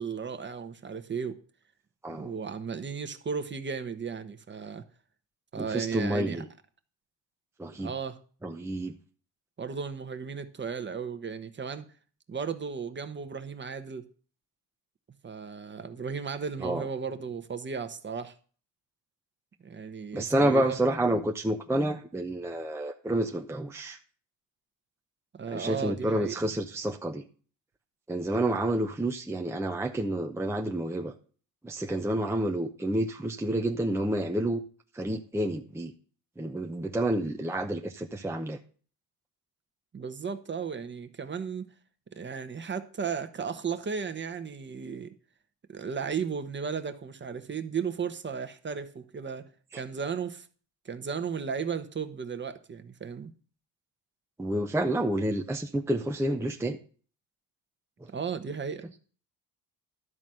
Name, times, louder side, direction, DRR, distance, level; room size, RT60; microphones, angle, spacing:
voice 1, 0.0-1.4 2.1-4.8 5.5-6.4 7.8-8.2 9.6-11.8 12.3-14.0 15.2-18.3 19.6-20.8 25.3-26.3 39.9-41.7 42.1-45.1 45.7-50.5 50.8-53.3 58.1-58.9, right 6 dB, 30° right, 1.2 m, -35 dB
voice 2, 5.6-6.5 7.6-7.9 8.4-8.9 16.6-16.9 20.1-24.0 25.5-27.2 28.1-31.1 31.6-34.6 34.9-35.9 36.4-38.6 49.7-49.8 54.4-56.8 58.0-58.1, right 1 dB, 5° right, 0.7 m, -29 dB
12.5 x 4.2 x 7.6 m
cardioid pair, 100°, 39 cm